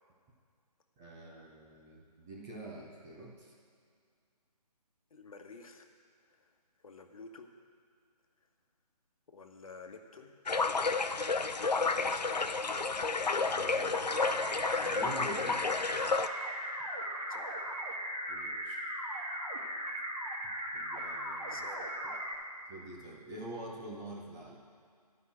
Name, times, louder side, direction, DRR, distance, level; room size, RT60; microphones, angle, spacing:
voice 1, 1.0-3.5 13.5-15.7 18.3-18.8 20.7-21.6 22.0-22.1 22.7-24.6, right 2 dB, 5° right, -4 dB, 0.3 m, -46 dB
voice 2, 5.1-5.9 6.4-6.5 6.8-7.5 9.3-10.4 11.4-12.4 17.3-17.6 21.5-21.9, left 4 dB, 55° left, 5 dB, 1.2 m, -51 dB
sound 1, 10.5-16.3, left 4 dB, 85° left, 0.6 m, -31 dB
sound 2, 14.1-22.3, equal, 65° right, 2.8 m, -38 dB
11.0 x 5.6 x 8.5 m, 2.2 s
figure-of-eight pair, 145°, 21 cm